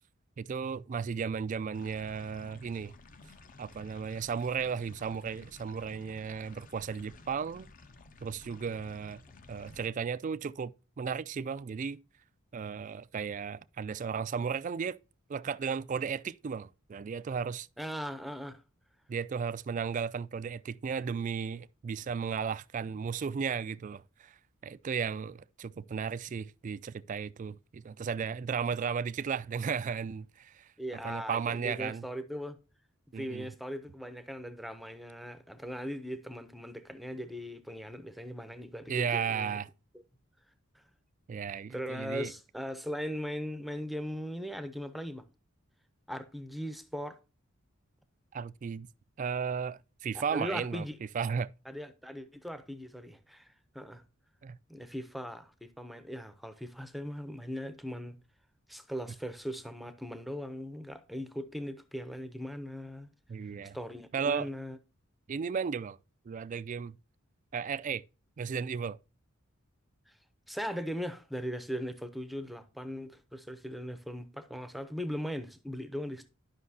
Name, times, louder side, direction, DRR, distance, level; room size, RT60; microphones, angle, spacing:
voice 1, 0.4-2.9 3.6-7.7 8.2-9.2 9.5-12.0 12.5-15.0 15.3-17.7 19.1-24.4 24.6-30.7 31.0-32.1 33.1-33.5 38.9-39.7 41.3-42.3 48.3-48.9 49.2-50.8 51.1-51.5 54.4-54.6 63.3-63.8 64.1-64.5 65.3-66.0 66.3-67.0 67.5-68.0 68.4-69.0, right 6 dB, 35° right, 0.3 m, -34 dB
sound 1, 1.7-9.9, left 3 dB, 40° left, 0.6 m, -54 dB
voice 2, 17.8-18.6 30.8-32.6 33.2-39.6 40.7-40.8 41.7-45.2 46.1-47.2 50.1-51.0 51.7-54.0 54.7-58.2 58.7-63.1 63.7-64.8 70.1-70.2 70.5-76.3, equal, ahead, 0.6 m, -39 dB
11.5 x 5.6 x 2.7 m
head